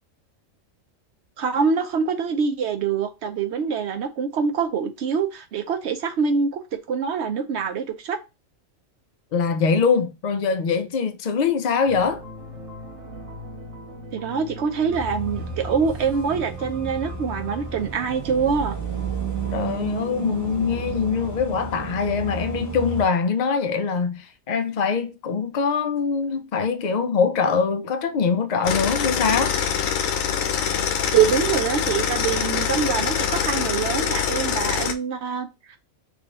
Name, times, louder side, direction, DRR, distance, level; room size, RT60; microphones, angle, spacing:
voice 1, 1.4-6.6 6.9-8.2 14.1-18.8 31.1-35.8, right 6 dB, 65° right, 0.8 m, -24 dB
voice 2, 9.3-12.2 19.5-29.6, left 5 dB, 65° left, 0.4 m, -23 dB
sound 1, 11.8-19.9, equal, 85° right, 1.3 m, -41 dB
sound 2, 14.9-23.1, right 4 dB, 15° right, 1.1 m, -32 dB
sound 3, 28.6-34.9, left 8 dB, 85° left, 1.0 m, -24 dB
3.3 x 2.6 x 3.9 m
omnidirectional pair, 1.4 m